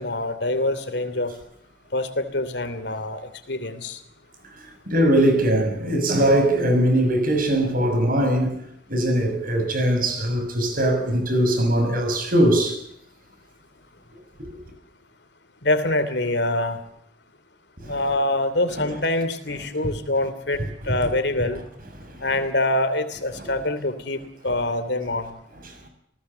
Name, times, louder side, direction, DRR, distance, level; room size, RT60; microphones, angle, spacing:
voice 1, 0.0-1.3 1.9-4.0 15.6-16.8 17.8-21.6 22.2-25.4, left 2 dB, 65° left, 3.0 m, -25 dB
voice 2, 4.9-8.6 8.9-12.8 17.8-18.0 22.0-22.3 23.4-23.5, right 1 dB, 50° right, 6.3 m, -21 dB
29.0 x 19.0 x 6.9 m
head